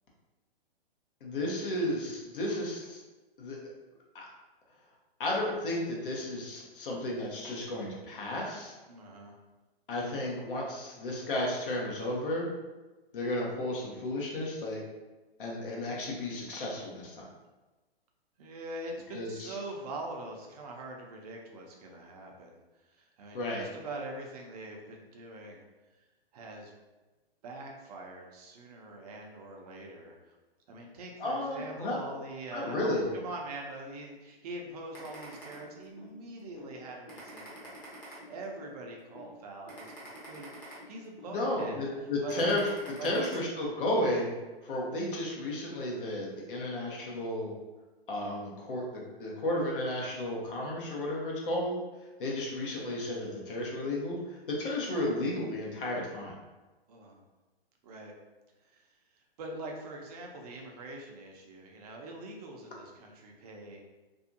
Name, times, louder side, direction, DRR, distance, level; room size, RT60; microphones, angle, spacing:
voice 1, 1.2-3.0 3.4-3.7 4.1-4.3 5.2-8.8 9.9-12.5 13.1-14.8 15.4-17.2 19.1-19.6 23.3-23.7 31.2-32.0 32.5-33.1 41.3-44.3 44.6-47.5 48.1-51.8 52.2-56.4, left 1 dB, 60° left, -3 dB, 0.9 m, -33 dB
voice 2, 8.9-9.4 18.4-22.6 22.9-25.7 26.3-26.7 27.4-30.2 30.7-41.9 42.2-42.6 43.0-43.3 56.9-57.2 57.8-58.1 58.7-58.9 59.4-63.8, right 2 dB, 40° right, 0 dB, 0.6 m, -43 dB
sound 1, 34.9-36.1 36.6-36.7 37.1-38.7 39.2-39.3 39.7-41.3 41.8-41.9 42.3-43.3, equal, 15° left, 0.8 m, -48 dB
2.6 x 2.3 x 2.6 m, 1.2 s
figure-of-eight pair, 125°, 31 cm